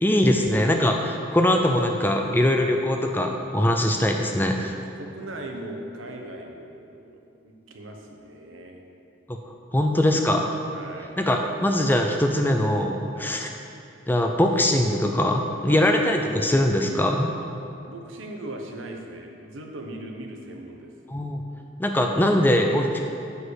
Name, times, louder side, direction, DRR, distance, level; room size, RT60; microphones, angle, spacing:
voice 1, 0.0-4.7 9.3-9.4 9.7-10.5 11.2-13.5 14.1-17.4 21.1-21.4 21.8-23.0, left 1 dB, 10° left, 3 dB, 0.4 m, -22 dB
voice 2, 5.0-7.2 7.4-8.8 10.7-11.2 13.1-13.4 15.7-15.9 17.8-20.9, right 1 dB, 85° right, 2 dB, 1.0 m, -39 dB
8.1 x 4.9 x 6.4 m, 2.6 s
head